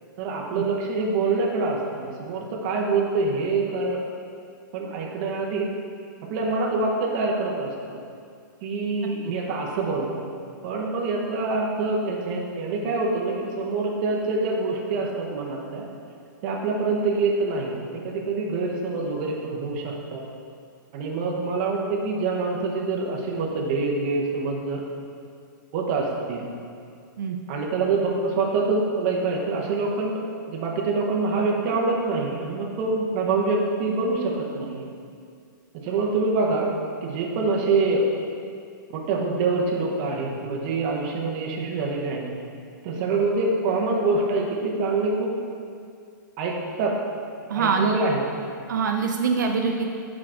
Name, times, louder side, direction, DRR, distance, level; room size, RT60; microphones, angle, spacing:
voice 1, 0.2-4.0 4.7-5.7 6.3-7.7 8.6-10.2 10.6-15.9 16.4-20.2 20.9-24.8 25.7-26.5 27.5-34.9 35.8-36.7 37.0-38.1 38.9-42.2 42.8-45.3 46.4-47.0 47.5-48.2, right 3 dB, 25° right, -2 dB, 0.7 m, -25 dB
voice 2, 47.5-48.0 48.7-49.9, right 5 dB, 65° right, 3 dB, 0.5 m, -24 dB
6.8 x 4.7 x 3.7 m, 2.3 s
hypercardioid pair, 175°, 11 cm